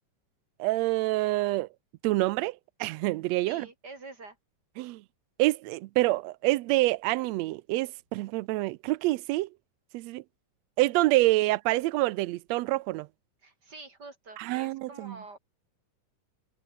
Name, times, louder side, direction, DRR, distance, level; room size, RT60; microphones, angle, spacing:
voice 1, 0.6-1.7 2.0-3.7 4.8-5.0 5.4-9.5 9.9-10.2 10.8-13.1 14.4-15.2, right 19 dB, 85° right, 1.5 m, -27 dB
voice 2, 3.4-4.4 13.4-15.4, right 3 dB, 30° right, 5.7 m, -46 dB
omnidirectional pair, 3.7 m